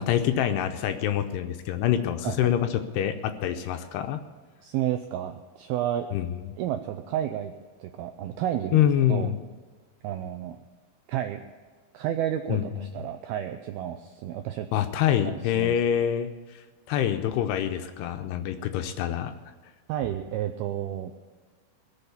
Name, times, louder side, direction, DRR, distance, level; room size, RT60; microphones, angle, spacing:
voice 1, 0.0-4.2 6.1-6.5 8.7-9.4 12.5-12.9 14.7-19.3, left 10 dB, 75° left, 7 dB, 2.6 m, -26 dB
voice 2, 4.6-6.1 6.6-7.5 7.8-8.8 9.1-9.3 10.0-10.6 11.1-11.4 11.9-14.7 15.2-15.8 19.9-21.1, right 11 dB, 90° right, 6 dB, 2.2 m, -31 dB
21.5 x 7.3 x 6.9 m, 1.5 s
omnidirectional pair, 5.2 m